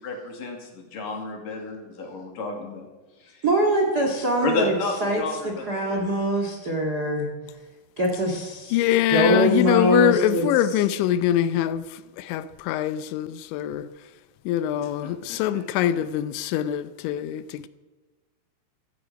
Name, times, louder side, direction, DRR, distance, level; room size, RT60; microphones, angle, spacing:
voice 1, 0.0-2.9 3.2-3.4 4.4-6.2 9.2-9.5 9.8-10.4 14.8-15.1 15.5-15.6, left 3 dB, 55° left, 3.9 m, -32 dB
voice 2, 3.4-4.7 5.0-7.3 8.0-8.8 9.1-10.5, right 1 dB, 55° right, 1.1 m, -23 dB
voice 3, 8.7-13.9 14.5-17.7, left 12 dB, 90° left, 3.1 m, -24 dB
16.0 x 14.5 x 5.2 m
omnidirectional pair, 5.1 m